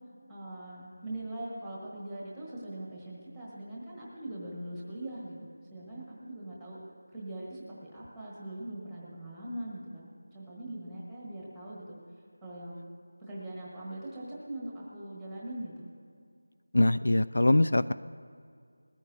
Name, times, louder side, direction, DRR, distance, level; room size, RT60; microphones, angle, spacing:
voice 1, 0.3-6.8 7.1-10.1 10.3-12.0 12.4-12.8 13.2-15.8, right 1 dB, ahead, -6 dB, 1.2 m, -41 dB
voice 2, 16.7-17.9, left 1 dB, 65° left, 13 dB, 0.3 m, -23 dB
20.5 x 13.5 x 2.7 m, 2.2 s
figure-of-eight pair, 180°, 0 cm